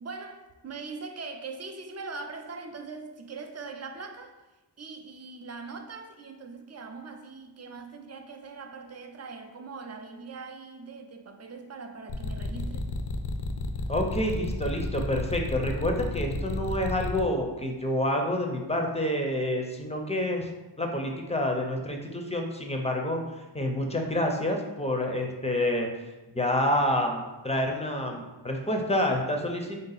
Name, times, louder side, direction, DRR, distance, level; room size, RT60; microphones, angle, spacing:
voice 1, 0.0-4.3 4.8-12.9, right 4 dB, 35° right, 5 dB, 0.4 m, -41 dB
sound 1, 12.1-17.2, left 3 dB, 65° left, 0.5 m, -32 dB
voice 2, 13.9-20.5 20.8-23.2 23.5-25.9 26.3-29.8, left 1 dB, 15° left, 2 dB, 0.5 m, -28 dB
3.6 x 2.7 x 3.9 m, 1.1 s
wide cardioid pair, 80°, 45 cm